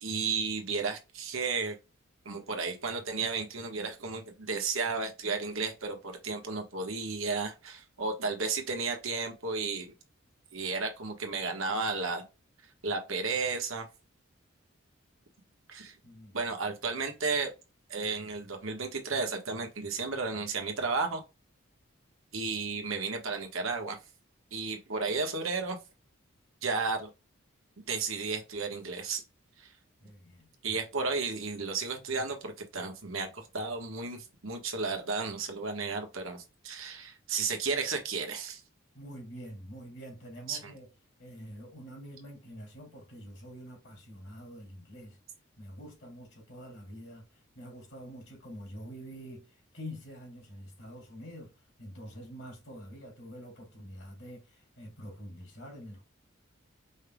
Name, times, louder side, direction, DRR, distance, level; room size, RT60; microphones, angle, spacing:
voice 1, 0.0-1.7 2.2-9.9 10.5-12.2 12.8-13.9 15.7-16.0 16.3-17.5 17.9-21.2 22.3-24.0 24.5-25.8 26.6-27.1 27.8-29.2 29.6-29.7 30.6-38.6 40.5-40.7, right 4 dB, 80° right, 1.3 m, -33 dB
voice 2, 16.0-16.4 30.0-30.5 38.9-40.9 41.2-45.2 45.6-56.0, equal, 60° left, 2.6 m, -46 dB
5.4 x 3.5 x 2.3 m
head